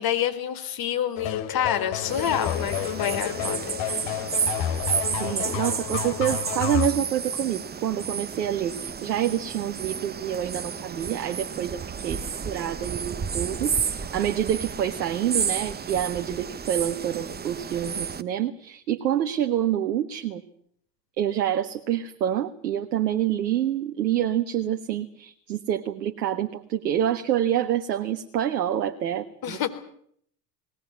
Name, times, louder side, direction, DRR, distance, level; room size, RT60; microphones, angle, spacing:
voice 1, 0.0-4.1 29.4-29.7, left 10 dB, 45° left, 9 dB, 4.1 m, -28 dB
sound 1, 1.2-6.9, left 10 dB, 60° left, 3.0 m, -30 dB
sound 2, 2.1-18.2, right 6 dB, 20° right, 1.1 m, -32 dB
voice 2, 5.2-20.4 21.2-29.7, right 10 dB, 85° right, 6 dB, 1.7 m, -27 dB
20.5 x 18.5 x 9.6 m, 0.66 s
hypercardioid pair, 80°, 49 cm